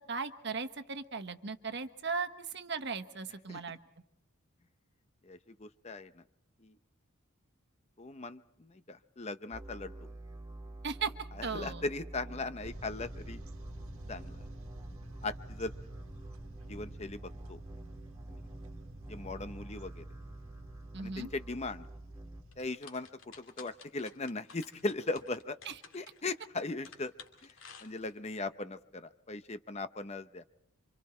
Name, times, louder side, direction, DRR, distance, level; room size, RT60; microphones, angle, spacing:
voice 1, 0.0-3.8 10.8-11.1 11.4-11.8 20.9-21.3, right 5 dB, 50° right, 9 dB, 1.3 m, -37 dB
voice 2, 5.2-6.2 6.6-6.8 8.0-10.1 11.3-13.4 14.1-14.4 15.2-15.7 16.7-17.6 18.3-18.4 19.1-20.1 21.0-21.9 22.6-23.1 23.4-25.6 25.9-27.1 27.4-30.4, left 3 dB, 30° left, 11 dB, 0.7 m, -39 dB
sound 1, 9.5-22.4, right 2 dB, 15° right, 2.2 m, -47 dB
sound 2, 12.6-22.7, right 1 dB, 80° right, 1.8 m, -50 dB
sound 3, 22.5-28.3, left 5 dB, 60° left, 2.7 m, -53 dB
28.0 x 26.0 x 4.4 m, 0.77 s
head